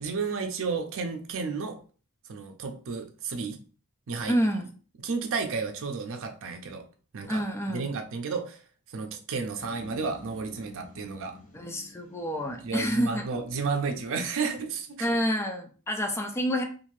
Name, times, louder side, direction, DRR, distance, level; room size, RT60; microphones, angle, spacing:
voice 1, 0.0-1.8 2.3-3.6 4.1-4.3 5.0-6.8 7.1-7.4 7.7-8.6 8.9-11.4 12.6-15.1, right 4 dB, 60° right, 6 dB, 0.5 m, -32 dB
voice 2, 4.3-4.7 7.3-7.9 11.5-13.2 15.0-16.6, equal, 10° left, 3 dB, 0.3 m, -28 dB
sound 1, 9.6-14.8, left 2 dB, 35° left, 0.8 m, -51 dB
2.7 x 2.5 x 3.0 m, 0.39 s
head